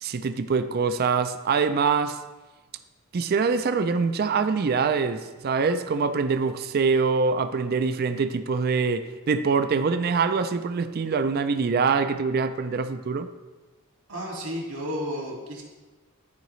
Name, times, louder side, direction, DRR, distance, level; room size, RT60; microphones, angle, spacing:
voice 1, 0.0-2.2 3.1-13.3, right 5 dB, 45° right, 10 dB, 0.4 m, -24 dB
voice 2, 14.1-15.6, equal, 75° right, -2 dB, 2.0 m, -32 dB
10.5 x 4.8 x 3.1 m, 1.2 s
head